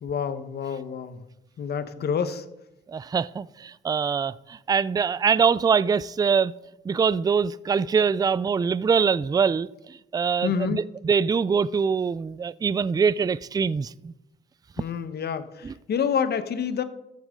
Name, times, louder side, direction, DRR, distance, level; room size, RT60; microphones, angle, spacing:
voice 1, 0.0-1.2 1.6-2.4 10.4-10.8 14.8-16.8, left 7 dB, 55° left, 1.1 m, -28 dB
voice 2, 2.9-6.6 6.9-14.1 15.6-15.7, right 6 dB, 20° right, 0.3 m, -24 dB
14.0 x 9.0 x 3.7 m
cardioid pair, 90°, 20 cm